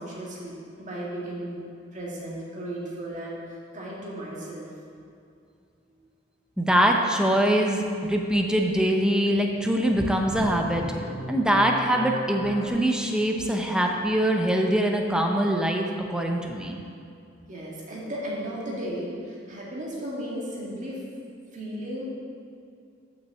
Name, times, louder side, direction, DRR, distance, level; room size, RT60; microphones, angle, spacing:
voice 1, 0.0-1.6 1.9-4.7 5.9-6.0 17.5-21.0 21.5-22.0, right 1 dB, 40° right, -5 dB, 1.9 m, -35 dB
voice 2, 6.6-11.0 11.3-16.8, right 1 dB, 5° right, 2 dB, 0.6 m, -23 dB
sound 1, 9.6-12.7, right 1 dB, 25° left, 2.3 m, -37 dB
6.2 x 5.9 x 6.9 m, 2.4 s
head